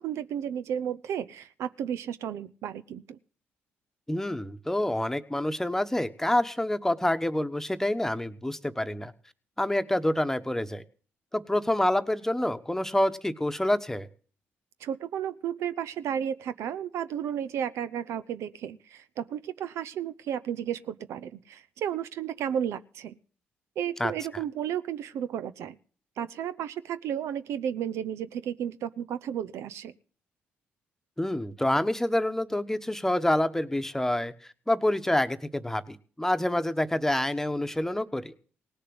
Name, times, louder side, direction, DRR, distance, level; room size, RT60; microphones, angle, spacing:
voice 1, 0.0-3.2 14.8-23.1 23.8-25.8 26.2-29.9, right 9 dB, 75° right, 14 dB, 0.6 m, -33 dB
voice 2, 4.1-9.1 9.6-10.8 11.3-14.1 24.0-24.1 31.2-34.3 34.7-38.3, left 1 dB, 10° left, 10 dB, 1.1 m, -27 dB
18.0 x 6.7 x 7.8 m, 0.42 s
supercardioid pair, 60°, 5 cm